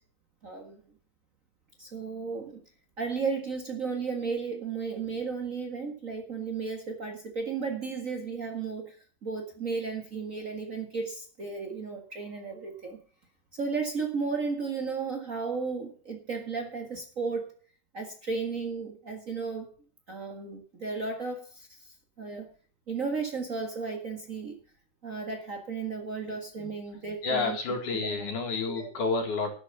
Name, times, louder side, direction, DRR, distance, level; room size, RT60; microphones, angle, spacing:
voice 1, 0.4-0.8 1.8-2.6 3.0-9.0 9.2-13.0 13.5-17.5 17.9-19.7 20.1-22.5 22.9-24.6 25.0-27.6 27.9-28.3 28.7-28.9, right 4 dB, 75° right, 3 dB, 0.7 m, -34 dB
voice 2, 27.2-29.5, left 4 dB, 55° left, 3 dB, 3.1 m, -30 dB
12.0 x 7.4 x 6.8 m, 0.42 s
omnidirectional pair, 4.5 m